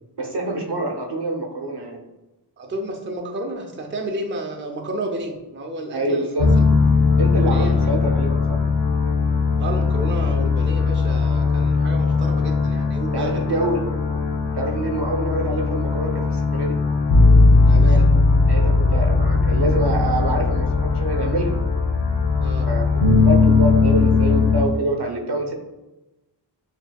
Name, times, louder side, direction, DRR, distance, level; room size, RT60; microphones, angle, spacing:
voice 1, 0.2-2.0 5.9-6.5 7.2-8.6 13.1-13.8 14.5-16.8 18.5-21.5 22.7-22.9 23.2-25.5, right 1 dB, 65° right, 2 dB, 0.8 m, -26 dB
voice 2, 2.6-6.5 7.4-7.9 9.6-13.7 17.7-18.1 22.4-22.7, right 1 dB, 25° right, 2 dB, 0.6 m, -31 dB
sound 1, 6.4-24.6, left 4 dB, 80° left, 0.8 m, -18 dB
6.2 x 2.7 x 2.3 m, 1.0 s
wide cardioid pair, 50°, 44 cm